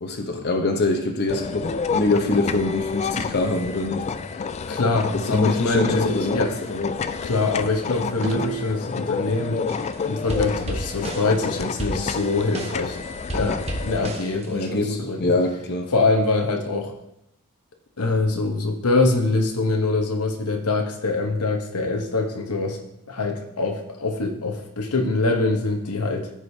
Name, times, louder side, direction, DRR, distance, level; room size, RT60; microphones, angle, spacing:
voice 1, 0.0-4.0 5.2-7.0 14.5-15.9, left 2 dB, 50° left, 3 dB, 0.8 m, -24 dB
sound 1, 1.3-14.1, left 5 dB, 30° left, 0.3 m, -29 dB
voice 2, 4.7-6.6 7.2-9.6 10.0-13.0 13.3-15.3 15.9-16.9 18.0-22.8 23.1-26.3, left 3 dB, 85° left, 4 dB, 1.1 m, -24 dB
sound 2, 8.2-9.0 10.7-10.8 11.0-11.1 11.6-11.7 12.1-12.2 13.0-13.8, right 8 dB, 60° right, 0.6 m, -31 dB
sound 3, 9.7-9.9 10.3-12.9 13.3-14.7, right 1 dB, 30° right, 1.1 m, -32 dB
14.0 x 5.0 x 2.8 m, 0.82 s
head